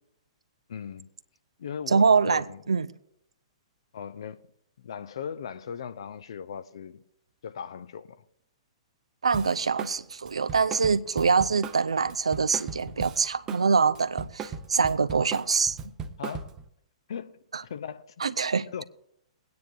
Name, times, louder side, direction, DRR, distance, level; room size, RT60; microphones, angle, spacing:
voice 1, 0.7-1.1 1.6-2.6 3.9-4.5 4.8-7.0 7.4-8.2 16.2-16.5 17.1-17.4 17.7-18.1 18.4-18.5 18.7-18.8, left 7 dB, 55° left, 0.6 m, -38 dB
voice 2, 1.9-2.9 9.2-15.8 17.5-17.6 18.2-18.7, right 5 dB, 70° right, 0.5 m, -24 dB
Drum kit, 9.3-10.0 10.2-13.6 13.9-16.7, right 6 dB, 20° right, 0.7 m, -38 dB
22.0 x 9.4 x 2.6 m
figure-of-eight pair, 110°, 3 cm